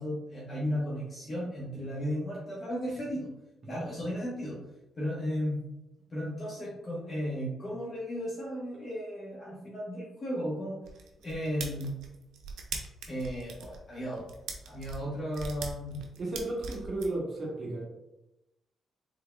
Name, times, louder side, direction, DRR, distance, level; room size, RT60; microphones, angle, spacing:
voice 1, 0.0-3.3 3.7-4.6 5.0-5.6 6.1-10.8 11.2-11.9 13.1-14.2 14.7-16.0, equal, 35° left, -6 dB, 1.1 m, -35 dB
sound 1, 10.8-17.1, right 4 dB, 85° right, 0.5 m, -40 dB
voice 2, 16.2-17.8, right 2 dB, 45° right, -2 dB, 0.9 m, -34 dB
3.8 x 3.6 x 2.3 m, 0.92 s
cardioid pair, 90°, 0 cm